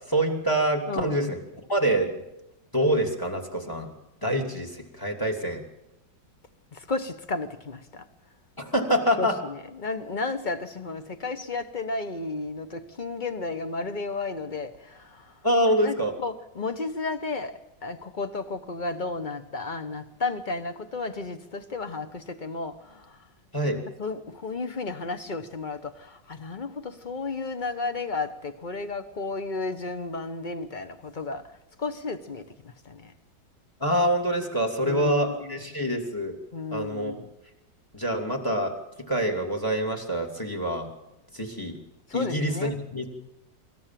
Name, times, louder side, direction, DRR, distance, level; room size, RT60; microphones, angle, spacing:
voice 1, 0.1-1.4 1.7-2.2 2.7-3.9 4.2-5.6 8.6-9.4 15.4-16.1 23.5-23.8 33.8-36.3 36.7-37.1 37.9-38.7 39.1-40.9 41.3-41.7 42.1-43.1, right 1 dB, 10° left, 2.8 m, -25 dB
voice 2, 0.9-1.3 6.7-8.0 9.2-15.3 15.8-17.5 17.8-23.2 24.0-31.4 31.8-33.1 34.8-35.6 36.5-37.3 42.1-42.7, left 3 dB, 30° left, 1.0 m, -33 dB
25.0 x 14.0 x 7.6 m
omnidirectional pair, 1.9 m